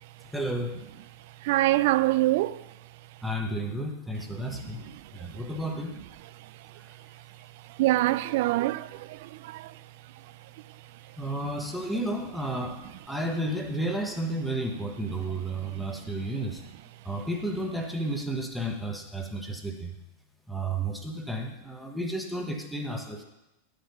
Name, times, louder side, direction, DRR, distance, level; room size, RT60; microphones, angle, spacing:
voice 1, 0.3-0.8 3.2-4.8 5.1-6.0 6.8-6.9 11.2-16.6 17.0-20.0 20.5-23.2, right 1 dB, ahead, 1.1 m, -32 dB
voice 2, 1.4-2.6 7.8-9.7, right 17 dB, 50° right, 0.3 m, -25 dB
11.5 x 5.2 x 5.6 m
figure-of-eight pair, 90°, 0 cm